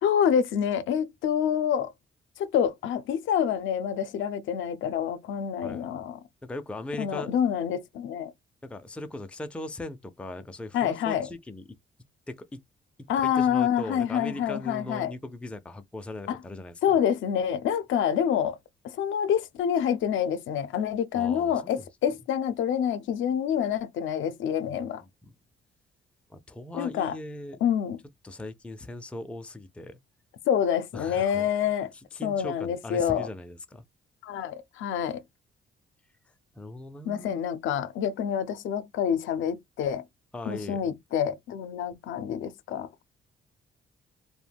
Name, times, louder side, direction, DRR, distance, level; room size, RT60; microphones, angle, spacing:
voice 1, 0.0-1.9 2.4-6.2 7.0-8.3 10.7-11.3 13.1-15.1 16.3-16.4 16.8-18.6 18.8-25.0 26.7-27.2 27.6-28.0 30.5-31.9 32.2-33.3 34.2-35.2 37.1-40.0 40.5-42.9, left 8 dB, 75° left, 0.5 m, -27 dB
voice 2, 6.4-7.3 8.6-11.6 12.3-12.6 13.0-16.7 21.1-21.9 24.6-24.9 25.2-25.3 26.3-27.6 28.2-30.0 30.9-31.5 32.1-33.8 36.5-37.5 40.3-40.9, left 2 dB, 5° left, 0.3 m, -39 dB
2.2 x 2.1 x 3.3 m
cardioid pair, 90°, 20 cm